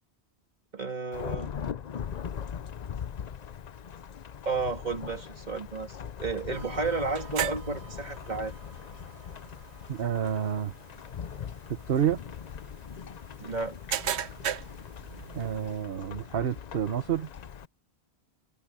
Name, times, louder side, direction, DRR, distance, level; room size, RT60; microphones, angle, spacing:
voice 1, 0.7-1.5 4.5-8.5 13.4-13.8, right 4 dB, 40° right, 2.2 m, -32 dB
Thunderstorm / Rain, 1.1-17.7, left 8 dB, 45° left, 0.6 m, -41 dB
sound 1, 6.5-15.8, right 9 dB, 90° right, 1.1 m, -39 dB
voice 2, 9.9-10.7 11.7-12.2 15.3-17.3, right 9 dB, 60° right, 1.1 m, -29 dB
omnidirectional pair, 1.1 m